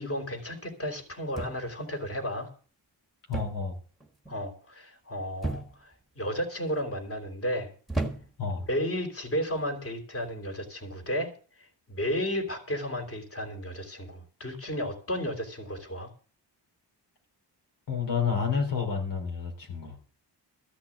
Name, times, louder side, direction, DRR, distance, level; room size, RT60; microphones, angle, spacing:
voice 1, 0.0-2.5 4.3-7.7 8.7-11.3 11.6-16.1, equal, 30° left, 4 dB, 3.4 m, -33 dB
sound 1, 1.3-1.9 3.3-3.7 4.0-4.4 5.4-6.0 6.7-7.1 7.9-8.5 9.5-9.7, right 2 dB, ahead, 1.6 m, -34 dB
voice 2, 3.3-3.8 8.4-8.6 17.9-20.0, left 6 dB, 80° left, 2 dB, 3.8 m, -29 dB
14.0 x 6.0 x 8.5 m, 0.40 s
wide cardioid pair, 165°, 42 cm